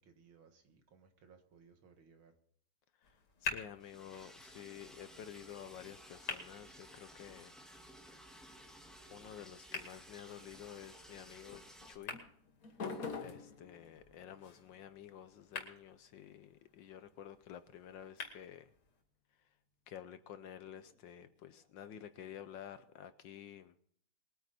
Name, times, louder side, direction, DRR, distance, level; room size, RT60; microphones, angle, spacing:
voice 1, 0.0-2.4, right 5 dB, 70° right, 2.4 m, -63 dB
sound 1, 3.0-19.0, left 4 dB, 85° left, 3.3 m, -50 dB
voice 2, 3.0-7.6 9.1-11.6 11.9-12.2 13.2-18.7 19.3-19.5 19.9-23.7, left 9 dB, 70° left, 1.2 m, -51 dB
Liquid, 3.8-11.9, equal, ahead, 1.4 m, -56 dB
sound 2, 11.5-18.3 20.0-23.1, left 4 dB, 45° left, 1.6 m, -52 dB
22.5 x 9.2 x 4.2 m
omnidirectional pair, 2.4 m